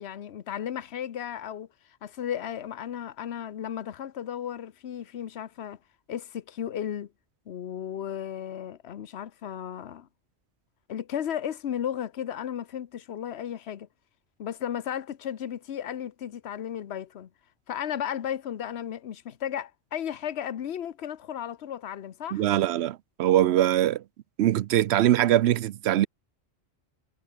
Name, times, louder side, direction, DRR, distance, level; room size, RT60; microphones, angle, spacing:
voice 1, 0.0-1.7 2.0-5.8 6.1-7.1 7.5-10.1 10.9-13.9 14.4-17.3 17.7-22.4, left 9 dB, 80° left, 1.1 m, -34 dB
voice 2, 22.3-24.0 24.4-26.1, right 12 dB, 80° right, 0.8 m, -22 dB
omnidirectional pair, 1.1 m